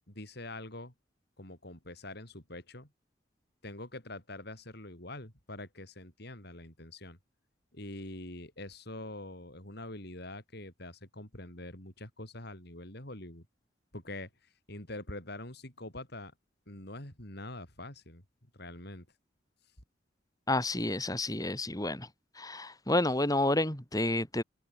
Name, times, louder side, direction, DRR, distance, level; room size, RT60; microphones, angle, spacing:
voice 1, 0.1-0.9 1.4-2.9 3.6-7.2 7.7-13.5 13.9-16.3 16.7-19.1, left 1 dB, 60° left, 7.2 m, -45 dB
voice 2, 20.5-22.1 22.3-24.4, left 2 dB, 20° left, 4.7 m, -30 dB
head